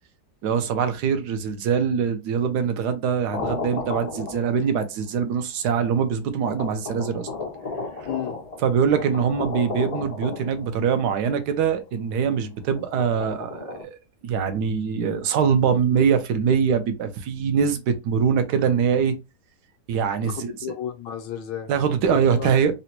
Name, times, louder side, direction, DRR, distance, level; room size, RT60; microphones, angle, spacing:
voice 1, 0.4-7.3 8.6-14.0 14.2-19.2 19.9-20.5 21.7-22.7, right 7 dB, 75° right, 1.1 m, -23 dB
sound 1, 3.3-4.9 5.7-5.8 6.4-11.0 12.8-13.8, left 4 dB, 65° left, 0.3 m, -34 dB
voice 2, 8.0-8.4 15.6-16.0 20.2-21.7 22.1-22.8, left 9 dB, 85° left, 1.4 m, -34 dB
3.9 x 2.1 x 2.8 m
omnidirectional pair, 1.9 m